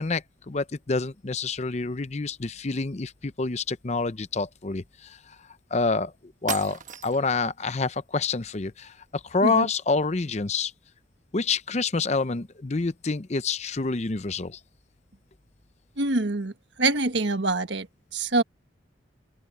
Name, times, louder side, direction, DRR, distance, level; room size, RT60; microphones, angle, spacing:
voice 1, 0.0-5.2 5.7-6.1 6.4-10.7 11.3-14.6, left 4 dB, 35° left, 0.6 m, -27 dB
sound 1, 5.9-6.0 6.5-7.4, right 7 dB, 40° right, 1.3 m, -35 dB
voice 2, 16.0-16.5 16.8-17.9 18.1-18.4, right 2 dB, 75° right, 1.5 m, -24 dB
open air
head